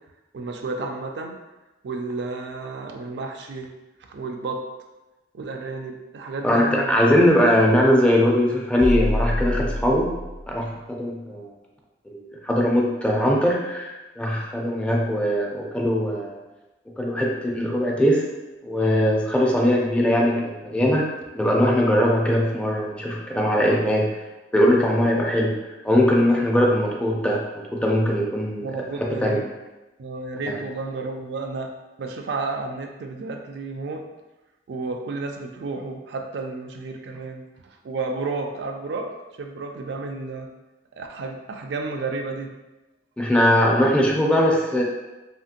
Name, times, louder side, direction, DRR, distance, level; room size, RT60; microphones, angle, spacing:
voice 1, 0.3-1.4 1.8-3.7 4.1-4.6 5.3-7.1 28.6-29.5 30.0-31.7 32.0-34.0 34.7-39.1 39.4-40.5 40.9-42.5, right 3 dB, 70° right, 3 dB, 0.3 m, -32 dB
voice 2, 6.4-10.1 10.5-11.5 12.1-16.4 17.0-18.2 18.6-21.1 21.3-24.1 24.5-25.6 25.8-27.4 27.7-28.7 29.0-29.4 30.5-30.6 43.2-44.8, equal, 5° left, -2 dB, 0.3 m, -20 dB
sound 1, 8.8-10.6, left 1 dB, 60° left, 0.5 m, -26 dB
2.8 x 2.7 x 2.4 m, 1.1 s
head